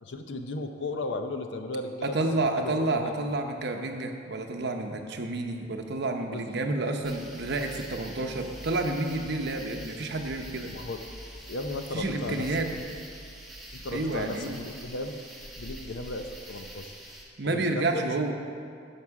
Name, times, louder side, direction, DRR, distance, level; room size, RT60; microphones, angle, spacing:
voice 1, 0.0-2.2 2.6-3.1 6.3-6.5 10.6-11.0 11.5-12.7 13.7-15.2 15.5-16.9 17.4-18.1, left 2 dB, 70° left, 6 dB, 0.6 m, -35 dB
voice 2, 2.0-10.7 11.9-12.7 13.9-14.6 17.4-18.3, right 2 dB, 60° right, 4 dB, 0.8 m, -30 dB
sound 1, 7.0-17.2, right 1 dB, ahead, 1.3 m, -45 dB
11.0 x 6.0 x 4.8 m, 2.3 s
head